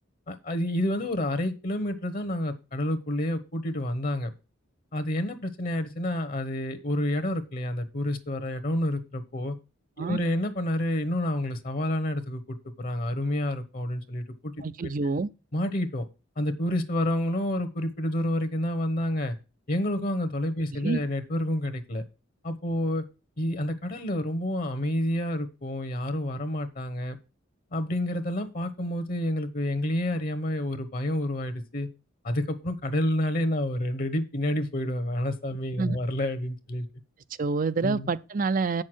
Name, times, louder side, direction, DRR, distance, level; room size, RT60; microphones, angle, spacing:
voice 1, 0.3-4.3 4.9-9.5 10.0-14.5 14.8-14.9 15.5-16.0 16.4-19.3 19.7-22.0 22.4-23.0 23.4-27.2 27.7-31.9 32.2-36.9 37.8-38.1, left 1 dB, 45° left, 1.0 m, -29 dB
voice 2, 14.6-15.3 20.8-21.0 35.8-36.0 37.4-38.8, right 4 dB, 45° right, 0.5 m, -27 dB
8.2 x 6.5 x 6.2 m
head